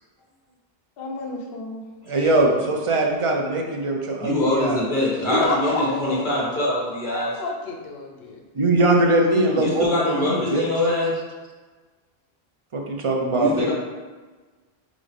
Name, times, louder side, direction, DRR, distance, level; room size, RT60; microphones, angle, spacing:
voice 1, 1.0-1.8 5.3-6.3 7.1-8.4, left 2 dB, 70° left, 0 dB, 0.9 m, -29 dB
voice 2, 2.1-4.9 5.2-5.4 8.5-10.6 12.7-13.7, right 2 dB, 40° right, 0 dB, 0.5 m, -21 dB
voice 3, 4.2-7.3 9.6-11.1 13.4-13.7, left 1 dB, 50° left, -6 dB, 1.5 m, -23 dB
4.1 x 3.6 x 3.2 m, 1.3 s
omnidirectional pair, 1.0 m